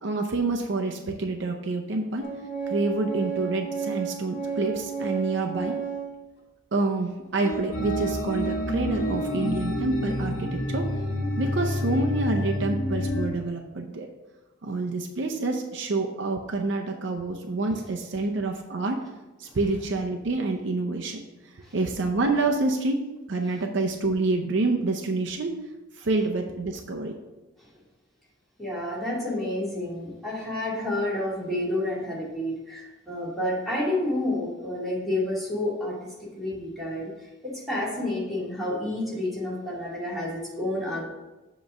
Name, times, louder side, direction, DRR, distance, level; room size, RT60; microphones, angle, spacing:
voice 1, 0.0-2.3 2.7-5.7 6.7-10.9 11.4-14.1 14.6-19.0 19.4-21.2 21.5-23.0 23.3-25.5 25.9-27.1, right 3 dB, 60° right, 2 dB, 0.6 m, -27 dB
Organ, 2.2-6.1 6.8-6.9 7.3-9.5, right 6 dB, 60° left, 1.3 m, -32 dB
sound 1, 7.7-13.3, left 1 dB, 80° left, 1.2 m, -29 dB
voice 2, 28.6-37.1 37.4-41.0, left 1 dB, ahead, -8 dB, 2.3 m, -30 dB
7.4 x 3.1 x 6.0 m, 1.1 s
head